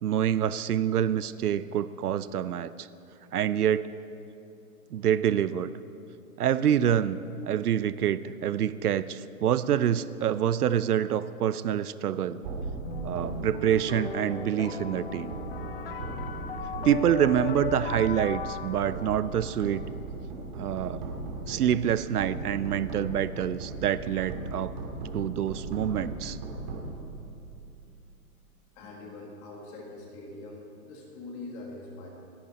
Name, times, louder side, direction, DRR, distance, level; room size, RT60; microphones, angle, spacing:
voice 1, 0.0-2.9 3.3-3.9 4.9-5.7 6.4-12.4 13.0-15.3 16.8-19.9 20.5-21.0 21.5-24.7 25.1-26.4, right 9 dB, 90° right, 15 dB, 0.8 m, -26 dB
sound 1, 12.4-27.7, right 3 dB, 30° right, 2.6 m, -38 dB
sound 2, 12.8-19.9, left 7 dB, 40° left, 0.9 m, -38 dB
voice 2, 28.7-32.1, left 2 dB, 15° left, -1 dB, 1.7 m, -43 dB
28.5 x 11.0 x 4.2 m, 2.7 s
hypercardioid pair, 180°, 44 cm